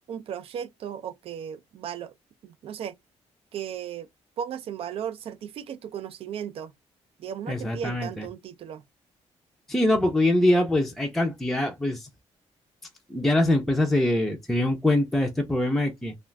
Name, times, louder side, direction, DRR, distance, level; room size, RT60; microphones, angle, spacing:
voice 1, 0.1-2.1 2.4-3.0 3.5-4.1 4.4-6.7 7.2-8.8, right 9 dB, 55° right, 0.4 m, -36 dB
voice 2, 7.5-8.3 9.7-12.1 13.1-16.1, left 1 dB, ahead, 0.5 m, -23 dB
2.4 x 2.4 x 3.1 m
cardioid pair, 150°, 12 cm